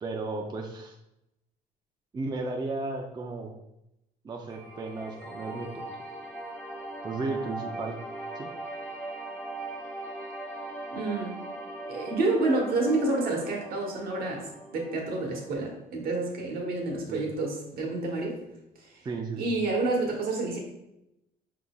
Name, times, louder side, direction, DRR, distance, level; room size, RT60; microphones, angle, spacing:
voice 1, 0.0-0.9 2.1-3.5 4.2-5.9 7.0-8.0 8.3-8.5 17.1-17.2 19.0-19.5, right 3 dB, 25° right, 2 dB, 0.4 m, -34 dB
sound 1, 4.5-15.6, right 2 dB, 10° left, 0.9 m, -40 dB
voice 2, 10.9-11.4 11.9-18.4 18.8-18.9 19.4-20.6, right 2 dB, 65° right, 0 dB, 1.1 m, -29 dB
4.7 x 3.8 x 2.3 m, 0.87 s
cardioid pair, 110°, 17 cm